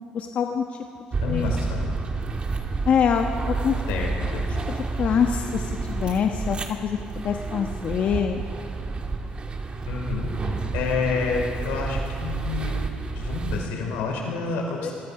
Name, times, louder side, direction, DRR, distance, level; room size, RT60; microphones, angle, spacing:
voice 1, 0.1-0.6 1.2-1.6 2.9-3.7 5.0-8.4 14.8-14.9, left 7 dB, 60° left, 3 dB, 1.3 m, -25 dB
sound 1, 1.1-13.7, right 3 dB, 35° right, 2.5 m, -30 dB
voice 2, 1.2-2.0 3.9-4.4 9.9-12.7 13.0-14.9, left 4 dB, 90° left, 0 dB, 5.6 m, -29 dB
26.5 x 23.0 x 5.9 m, 2.6 s
cardioid pair, 85°, 3 cm